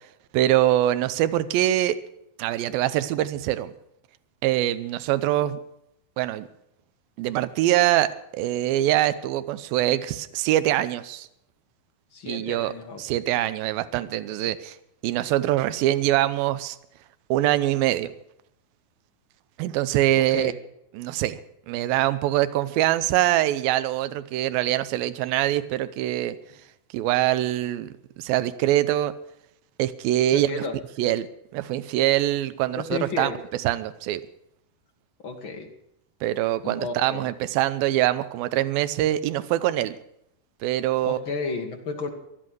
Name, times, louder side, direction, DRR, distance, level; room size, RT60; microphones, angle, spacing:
voice 1, 0.3-2.0 2.4-3.7 4.4-5.6 6.2-6.5 7.2-11.3 12.3-12.7 13.0-14.8 15.0-16.8 17.3-18.1 19.6-20.5 20.9-21.4 21.7-26.4 26.9-27.9 28.2-29.1 29.8-30.6 31.0-31.3 31.5-33.3 33.6-34.2 36.2-40.0 40.6-41.2, right 14 dB, 80° right, 13 dB, 2.5 m, -23 dB
voice 2, 12.1-13.2 20.2-20.6 30.3-30.7 32.8-33.4 35.2-35.7 36.6-37.3 41.0-42.1, left 4 dB, 45° left, 3 dB, 1.8 m, -32 dB
16.5 x 11.0 x 6.2 m, 0.78 s
omnidirectional pair, 4.4 m